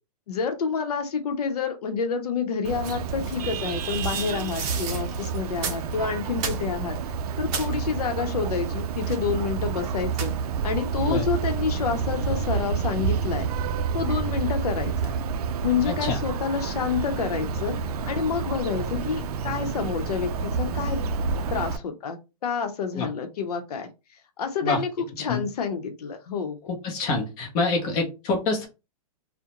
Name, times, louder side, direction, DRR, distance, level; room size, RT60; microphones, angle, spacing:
voice 1, 0.3-7.0 7.4-10.3 10.6-13.5 13.9-15.1 15.6-17.8 18.1-21.0 21.5-23.9 24.4-26.7, left 6 dB, 85° left, 6 dB, 0.7 m, -28 dB
Vehicle horn car horn honking, 2.6-21.8, right 5 dB, 80° right, 0.4 m, -29 dB
sound 1, 2.8-5.9 6.3-7.0 7.3-7.8 9.0-9.4 10.1-10.5, right 5 dB, 30° right, 0.6 m, -34 dB
voice 2, 15.8-16.2 22.9-23.1 24.6-24.8 25.3-25.4 26.8-28.7, left 3 dB, 30° left, 1 dB, 0.7 m, -26 dB
2.3 x 2.1 x 2.8 m, 0.27 s
hypercardioid pair, 160°, 19 cm